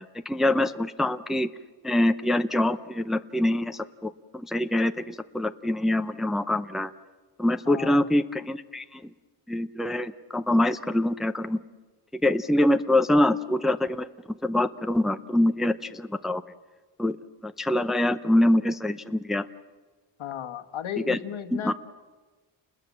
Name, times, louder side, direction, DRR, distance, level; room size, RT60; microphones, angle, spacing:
voice 1, 0.0-1.5 1.8-6.9 7.4-9.1 9.5-11.6 12.1-14.1 14.4-16.4 17.0-17.2 17.4-19.4 21.1-21.2 21.5-21.7, left 1 dB, ahead, 8 dB, 0.7 m, -25 dB
voice 2, 7.7-8.0 20.2-21.7, left 9 dB, 70° left, 6 dB, 1.5 m, -35 dB
29.5 x 21.0 x 7.4 m, 1.3 s
cardioid pair, 110°, 50 cm